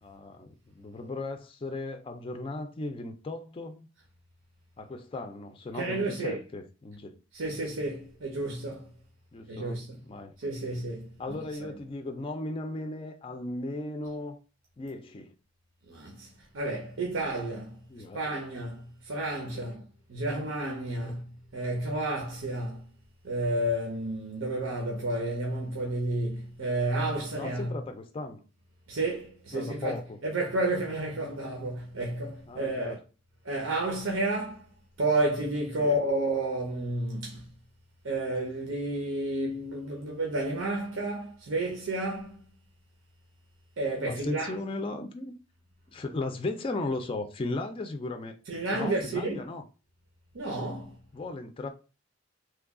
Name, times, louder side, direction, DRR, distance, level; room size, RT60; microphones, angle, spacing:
voice 1, 0.0-3.9 4.8-7.2 9.3-9.8 10.1-10.3 11.2-14.4 14.8-15.3 17.9-18.2 19.5-19.7 21.0-21.2 27.3-28.4 29.5-30.2 32.5-33.0 35.8-36.0 44.1-45.3 45.9-48.3 48.7-49.6 51.1-51.7, left 2 dB, 30° left, 0.4 m, -36 dB
voice 2, 5.7-6.4 7.3-8.9 9.5-10.0 10.4-11.7 15.9-16.3 16.5-17.8 18.1-19.8 20.1-22.8 23.2-27.8 28.9-33.0 33.4-34.6 35.0-37.4 38.0-42.4 43.8-44.5 48.5-49.5 50.3-50.9, right 2 dB, 85° right, 0.8 m, -31 dB
3.2 x 2.3 x 3.6 m
head